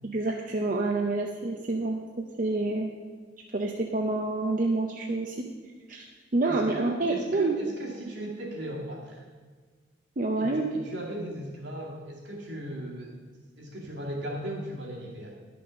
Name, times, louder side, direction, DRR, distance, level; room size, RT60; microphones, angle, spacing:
voice 1, 0.0-2.9 3.5-5.4 5.9-6.1 6.3-7.6 10.2-10.6, right 2 dB, 45° right, 1 dB, 0.7 m, -28 dB
voice 2, 6.4-9.2 10.4-13.2 13.6-15.4, right 1 dB, 70° right, -2 dB, 2.3 m, -37 dB
11.0 x 6.0 x 6.3 m, 1.5 s
head